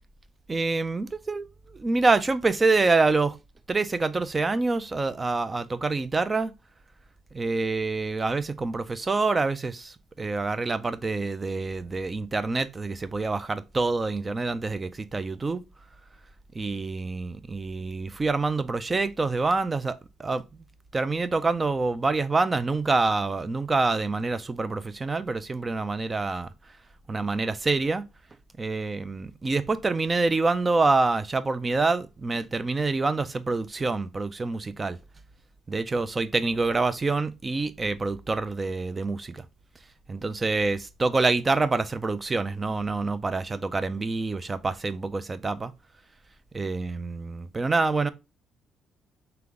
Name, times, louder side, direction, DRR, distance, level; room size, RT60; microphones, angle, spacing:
voice 1, 0.5-3.4 3.7-6.5 7.3-15.6 16.5-20.6 20.9-26.5 27.1-28.0 28.6-35.0 35.7-39.4 40.1-45.7 46.5-48.1, right 3 dB, 20° right, 0.4 m, -26 dB
3.8 x 3.4 x 3.5 m
cardioid pair, 145°, 0 cm